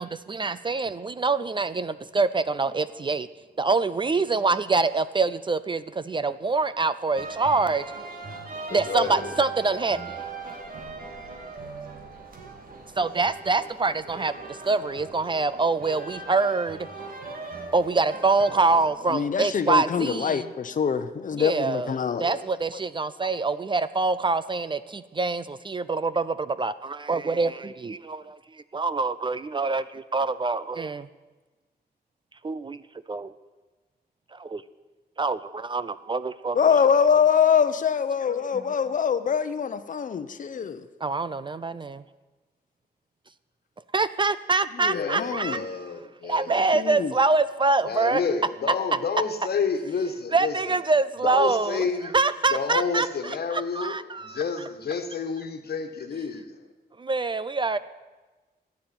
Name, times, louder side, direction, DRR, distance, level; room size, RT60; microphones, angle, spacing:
voice 1, 0.0-3.3 3.6-7.8 8.7-10.2 13.0-16.9 17.7-20.5 21.4-31.1 32.4-32.8 33.1-33.3 34.3-34.6 35.2-36.7 41.0-42.0 43.9-45.9 46.2-48.2 50.3-51.9 52.1-54.4 57.0-57.8, right 3 dB, 30° right, 15 dB, 0.4 m, -25 dB
sound 1, 7.2-18.9, right 3 dB, 55° right, 2.1 m, -39 dB
voice 2, 8.7-9.3 11.0-11.4 18.5-18.6 22.0-22.4 44.9-46.5 47.8-50.5 51.2-52.1 52.5-56.5, left 5 dB, 65° left, 7 dB, 1.5 m, -30 dB
voice 3, 19.1-22.2 23.2-23.3 36.5-40.9 44.7-45.6 46.5-47.1, left 7 dB, 50° left, 11 dB, 0.9 m, -24 dB
14.5 x 9.6 x 8.8 m, 1.2 s
wide cardioid pair, 165°, 17 cm